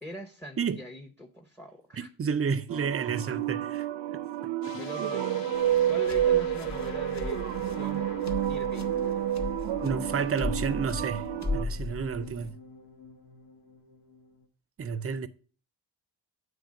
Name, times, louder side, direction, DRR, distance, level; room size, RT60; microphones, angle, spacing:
voice 1, 0.0-2.1 4.8-5.5 5.9-8.0 8.5-9.3, left 1 dB, 5° left, 0.8 m, -42 dB
voice 2, 2.2-3.8 9.8-11.2 11.5-12.5 14.8-15.3, right 6 dB, 35° right, 0.5 m, -30 dB
sound 1, 2.7-11.6, right 12 dB, 80° right, 0.6 m, -30 dB
sound 2, 4.6-14.4, left 5 dB, 80° left, 1.2 m, -44 dB
sound 3, 5.5-12.5, left 3 dB, 40° left, 0.9 m, -37 dB
8.9 x 3.2 x 6.3 m
wide cardioid pair, 130°, 43 cm